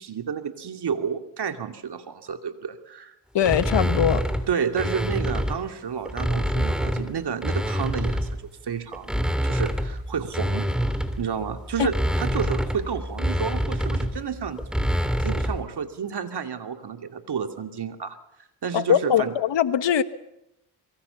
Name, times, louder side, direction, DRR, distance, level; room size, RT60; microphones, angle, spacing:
voice 1, 0.0-3.1 4.5-8.3 8.6-9.2 9.4-10.7 11.2-14.9 15.2-18.2 18.6-19.3, right 7 dB, 65° right, 8 dB, 2.5 m, -30 dB
voice 2, 3.3-4.2 11.8-11.9 18.7-20.0, left 9 dB, 85° left, 13 dB, 1.4 m, -21 dB
sound 1, 3.4-5.6 6.1-8.5 8.9-15.7, equal, ahead, 3.1 m, -26 dB
26.0 x 23.0 x 7.0 m, 0.85 s
cardioid pair, 65°, 42 cm